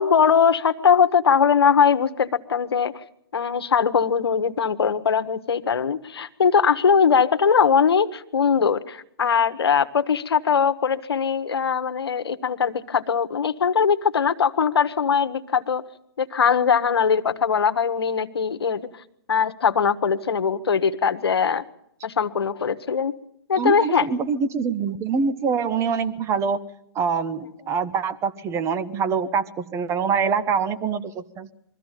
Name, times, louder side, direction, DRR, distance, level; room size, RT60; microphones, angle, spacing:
voice 1, 0.0-2.9 3.3-15.8 16.2-18.9 19.3-21.6 22.0-23.1 23.5-24.1, left 6 dB, 85° left, 11 dB, 1.1 m, -21 dB
voice 2, 23.6-26.6 26.9-31.5, right 5 dB, 20° right, 16 dB, 1.0 m, -25 dB
22.5 x 14.5 x 9.0 m, 0.76 s
hypercardioid pair, 135°, 13 cm